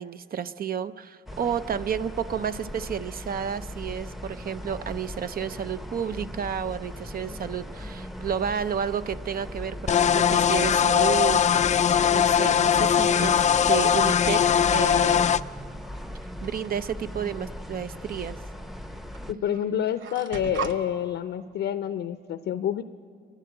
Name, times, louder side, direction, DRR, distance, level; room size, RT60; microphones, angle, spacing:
voice 1, 0.0-15.3 16.4-18.4, right 8 dB, 50° right, 13 dB, 0.6 m, -31 dB
sound 1, 1.3-19.3, equal, ahead, 0.8 m, -39 dB
sound 2, 9.9-15.4, left 8 dB, 35° left, 0.4 m, -20 dB
sound 3, 16.4-17.0 18.1-18.2 19.1-19.3 19.5-20.8, right 7 dB, 75° right, 1.0 m, -36 dB
voice 2, 19.3-22.8, left 9 dB, 70° left, 11 dB, 0.7 m, -28 dB
30.0 x 11.5 x 7.9 m, 2.2 s
cardioid pair, 90°, 20 cm